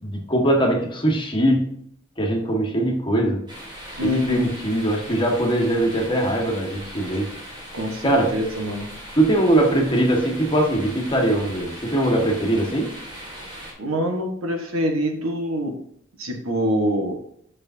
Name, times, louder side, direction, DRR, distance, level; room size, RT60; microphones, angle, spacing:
voice 1, 0.0-1.7 2.2-3.4 4.0-7.3 8.0-8.3 9.1-12.9, right 1 dB, 25° left, 0 dB, 1.6 m, -21 dB
sound 1, 3.5-13.7, equal, 20° right, 2.2 m, -39 dB
voice 2, 4.0-4.5 7.7-8.9 13.8-15.7 16.2-17.2, equal, 85° right, 3 dB, 1.5 m, -25 dB
8.7 x 6.2 x 2.8 m, 0.69 s
head